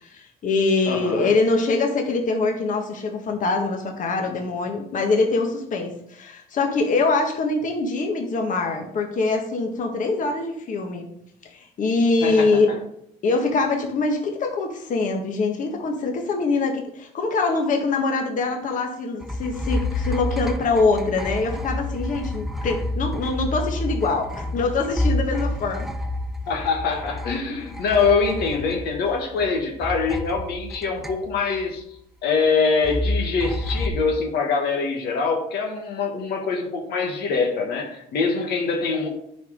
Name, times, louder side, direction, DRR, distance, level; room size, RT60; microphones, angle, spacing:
voice 1, 0.0-11.0 11.8-12.7 13.2-25.9, left 3 dB, 50° left, 2 dB, 1.5 m, -23 dB
voice 2, 0.8-1.3 12.2-12.7 26.5-31.8 32.2-39.1, left 4 dB, 75° left, 2 dB, 1.6 m, -24 dB
sound 1, 19.2-29.5 29.8-31.6 32.8-33.9, left 1 dB, ahead, 0.7 m, -29 dB
9.3 x 4.6 x 5.2 m, 0.72 s
cardioid pair, 110°, 17 cm